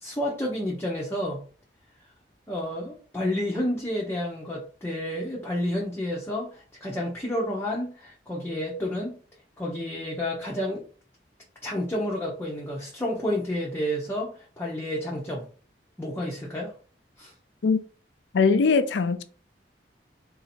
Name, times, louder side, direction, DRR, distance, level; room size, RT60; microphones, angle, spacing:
voice 1, 0.0-1.4 2.5-9.2 9.6-10.8 11.6-15.5 16.0-16.7 17.2-17.3, left 1 dB, 15° left, 0.8 m, -30 dB
voice 2, 18.3-19.2, left 4 dB, 90° left, 0.5 m, -21 dB
3.9 x 2.7 x 4.3 m
head